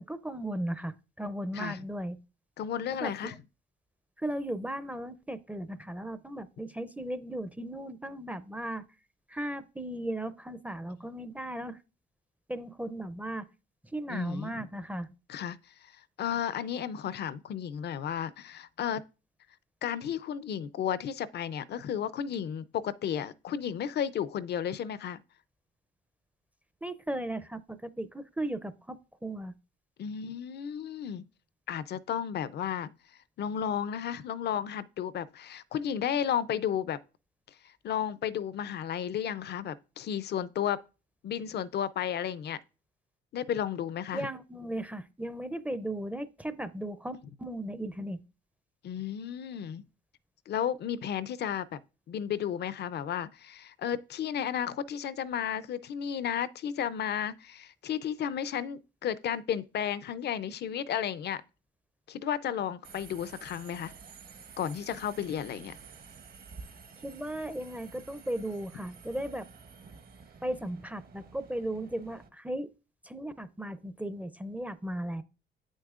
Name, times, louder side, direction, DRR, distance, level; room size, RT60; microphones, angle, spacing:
voice 1, 0.0-2.2 3.0-3.1 4.2-8.8 9.3-11.8 12.5-13.5 13.9-15.1 26.8-29.5 44.1-48.2 67.0-69.5 70.4-72.7 73.0-75.2, right 1 dB, 5° right, 0.5 m, -36 dB
voice 2, 2.6-3.4 14.1-14.7 15.3-15.6 16.2-19.0 19.8-25.2 30.0-31.3 31.7-33.0 33.4-37.0 37.6-40.8 41.2-42.6 43.3-44.3 48.8-49.8 50.5-51.8 52.1-61.4 62.1-63.9 64.6-65.8, left 9 dB, 55° left, 0.5 m, -33 dB
Subway metro underground, 62.8-72.3, right 5 dB, 50° right, 0.9 m, -51 dB
8.4 x 6.3 x 2.4 m
cardioid pair, 90°, 20 cm